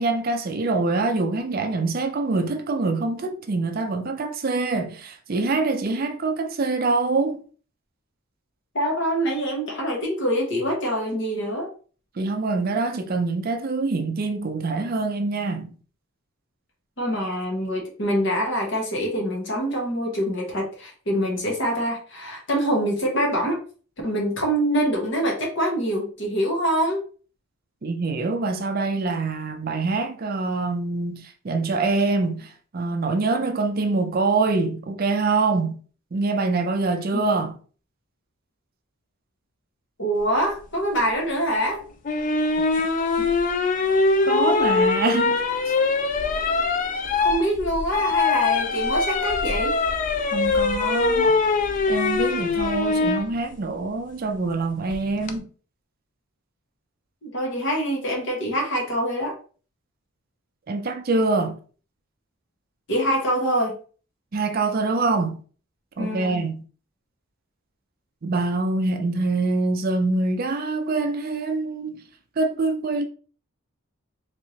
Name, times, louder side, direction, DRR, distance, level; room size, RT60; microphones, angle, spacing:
voice 1, 0.0-7.4 12.2-15.7 27.8-35.8 36.1-37.6 43.2-43.3 44.2-45.4 50.3-51.4 51.9-55.5 60.7-61.6 64.3-65.4 66.0-66.6 68.2-72.0 72.4-73.1, right 3 dB, 40° right, 0.4 m, -25 dB
voice 2, 8.7-11.7 17.0-23.6 24.0-27.0 37.1-37.2 40.0-41.8 47.2-49.8 57.2-59.3 62.9-63.7 66.0-66.4, equal, 55° left, 1.3 m, -25 dB
sound 1, 42.0-53.2 54.9-55.3, left 4 dB, 35° left, 0.3 m, -22 dB
3.5 x 3.2 x 2.7 m
head